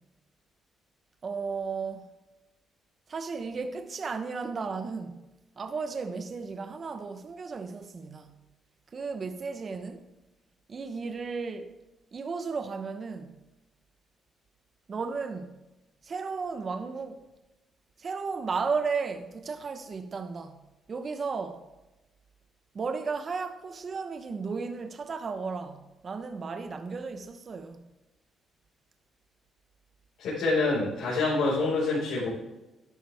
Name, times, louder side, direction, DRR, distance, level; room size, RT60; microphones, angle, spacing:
voice 1, 1.2-2.1 3.1-5.2 5.6-8.3 8.9-10.0 10.7-11.7 12.1-13.3 14.9-15.5 16.0-17.2 18.0-20.6 20.9-21.6 22.7-27.8, right 4 dB, 40° right, 1.0 m, -34 dB
voice 2, 30.2-32.3, left 3 dB, 80° left, 4.6 m, -26 dB
12.0 x 11.0 x 3.5 m
cardioid pair, 90°, 0 cm